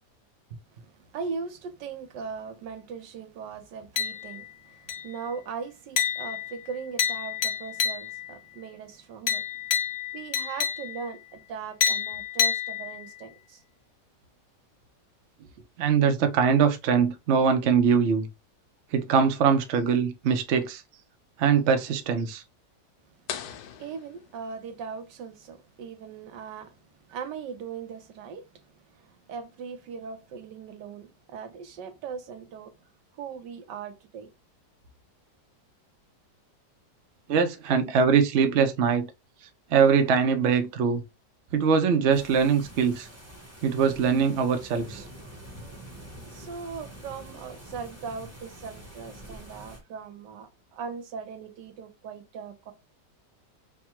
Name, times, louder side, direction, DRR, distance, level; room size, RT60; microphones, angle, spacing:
voice 1, 0.7-9.5 10.1-13.6 15.4-15.5 23.1-26.8 27.1-32.8 33.1-34.3 37.6-37.7 46.3-52.7, right 6 dB, 90° right, 1.4 m, -39 dB
sound 1, 4.0-4.5 4.9-5.3 6.0-8.4 9.3-11.2 11.8-13.2, left 8 dB, 55° left, 0.9 m, -29 dB
voice 2, 15.8-18.3 18.9-20.8 21.4-22.4 37.3-39.1 39.7-41.0 41.5-43.1 43.6-45.0, right 6 dB, 55° right, 0.8 m, -22 dB
sound 2, 23.3-25.0, left 9 dB, 75° left, 1.2 m, -40 dB
sound 3, 42.1-49.8, right 1 dB, 10° right, 0.9 m, -46 dB
3.5 x 2.3 x 4.4 m
omnidirectional pair, 1.8 m